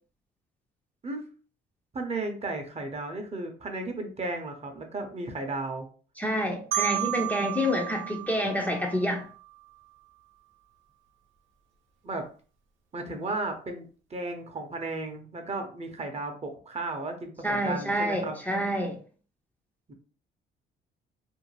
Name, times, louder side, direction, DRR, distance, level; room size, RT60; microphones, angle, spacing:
voice 1, 1.9-5.9 12.0-12.2 12.9-18.4 19.9-20.0, right 2 dB, 30° right, 4 dB, 0.7 m, -34 dB
voice 2, 6.2-9.3 17.4-19.0, equal, 10° left, 0 dB, 0.5 m, -28 dB
Marimba xylophone, 6.7-9.5, right 13 dB, 75° right, 0.7 m, -33 dB
2.6 x 2.2 x 3.0 m, 0.39 s
cardioid pair, 90°, 20 cm